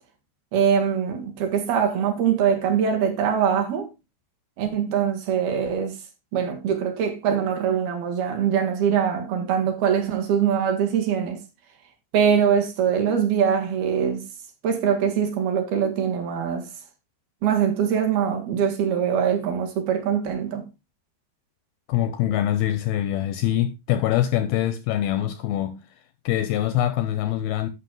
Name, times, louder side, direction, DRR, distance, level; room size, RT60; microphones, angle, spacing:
voice 1, 0.5-3.9 4.6-5.9 6.3-11.4 12.1-14.2 14.6-16.7 17.4-20.6, right 8 dB, 65° right, 3.4 m, -23 dB
voice 2, 21.9-25.8 26.3-27.7, left 12 dB, 85° left, 2.3 m, -24 dB
11.5 x 6.4 x 3.8 m
omnidirectional pair, 5.0 m